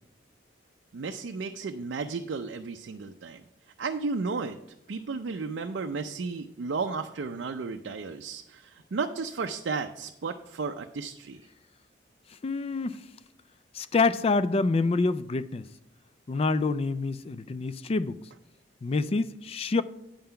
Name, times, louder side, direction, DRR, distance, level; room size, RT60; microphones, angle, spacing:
voice 1, 0.9-3.4 3.8-4.6 4.9-11.4, right 4 dB, 70° right, 0.4 m, -33 dB
voice 2, 12.4-13.0 13.7-15.7 16.3-18.2 18.8-19.8, left 3 dB, 30° left, 0.3 m, -27 dB
8.8 x 5.6 x 5.7 m
head